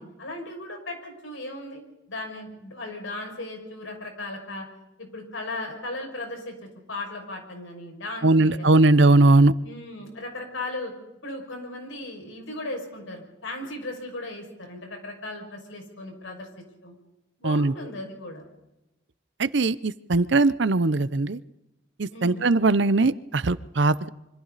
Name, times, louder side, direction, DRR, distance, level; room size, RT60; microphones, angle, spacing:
voice 1, 0.0-1.8 2.1-4.7 5.0-9.0 9.6-10.9 11.2-16.5 16.8-16.9 17.4-18.5 22.1-22.5, left 2 dB, 90° left, 2 dB, 6.2 m, -37 dB
voice 2, 8.2-9.5 17.4-17.7 19.4-21.4 22.0-24.1, right 2 dB, 70° right, 17 dB, 0.7 m, -20 dB
26.5 x 25.0 x 4.1 m, 0.94 s
head